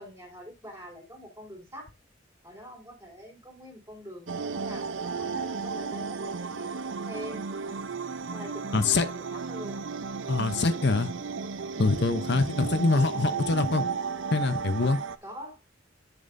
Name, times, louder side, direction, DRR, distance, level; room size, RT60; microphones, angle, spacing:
voice 1, 0.0-1.9 2.4-7.5 8.3-9.8 10.6-10.9 12.2-13.0 15.2-15.6, equal, 15° right, 4.4 m, -45 dB
sound 1, 4.3-15.2, right 5 dB, 85° right, 0.7 m, -34 dB
voice 2, 8.7-9.1 10.3-11.1 11.8-13.9 14.3-15.0, left 3 dB, 60° left, 0.7 m, -24 dB
10.5 x 6.9 x 2.6 m
head